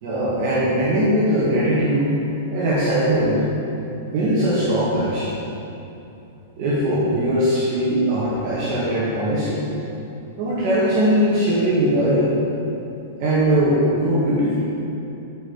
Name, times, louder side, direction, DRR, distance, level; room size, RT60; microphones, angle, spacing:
voice 1, 0.0-2.1 2.5-3.4 4.0-5.4 6.6-9.7 10.4-12.3 13.2-14.6, equal, 40° right, -9 dB, 1.9 m, -20 dB
13.0 x 5.1 x 5.2 m, 2.8 s
supercardioid pair, 175°, 0 cm